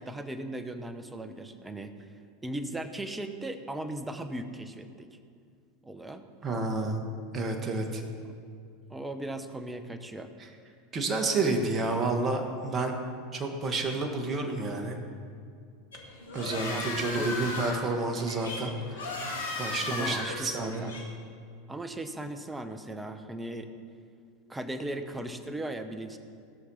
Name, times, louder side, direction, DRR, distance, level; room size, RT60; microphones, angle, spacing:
voice 1, 0.0-1.9 2.4-5.1 5.8-6.2 8.2-8.3 8.9-10.3 16.6-17.3 19.9-20.9 21.7-23.7 24.5-26.2, right 1 dB, 10° right, 8 dB, 1.1 m, -37 dB
voice 2, 6.4-7.0 7.3-8.0 10.9-13.0 13.3-15.0 16.3-19.2 19.6-20.8, right 3 dB, 30° right, 3 dB, 1.9 m, -30 dB
sound 1, 15.9-21.0, left 2 dB, 85° left, 2.4 m, -36 dB
17.5 x 6.5 x 5.7 m, 2.3 s
hypercardioid pair, 85°, 0 cm